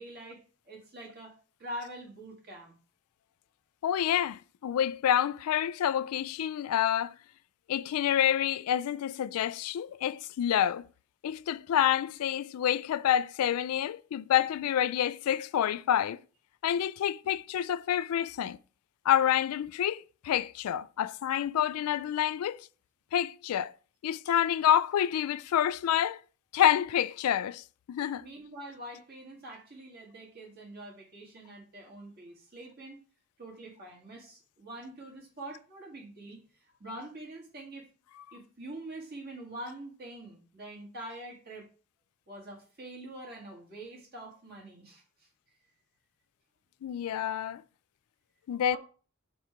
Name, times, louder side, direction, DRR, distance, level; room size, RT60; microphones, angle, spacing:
voice 1, 0.0-2.8 28.2-33.0 33.4-37.9 38.3-41.7 42.3-45.3 48.7-48.8, right 1 dB, 45° right, 2.0 m, -45 dB
voice 2, 3.8-7.1 7.7-10.9 11.2-16.2 16.6-18.6 19.1-22.6 23.1-23.7 24.0-26.2 26.5-28.3 46.8-47.6 48.5-48.8, left 10 dB, 90° left, 0.3 m, -28 dB
4.6 x 4.2 x 5.0 m
head